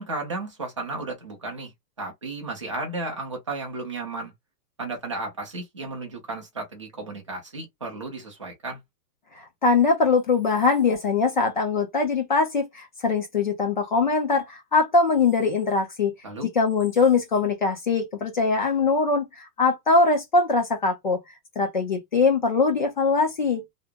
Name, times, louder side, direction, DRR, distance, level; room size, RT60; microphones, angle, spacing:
voice 1, 0.0-1.7 2.0-4.3 4.8-8.8 16.2-16.5, right 2 dB, 20° right, 0.4 m, -34 dB
voice 2, 9.4-16.1 16.6-21.2 21.6-23.6, left 4 dB, 30° left, 0.5 m, -22 dB
2.8 x 2.0 x 3.5 m
supercardioid pair, 175°, 48 cm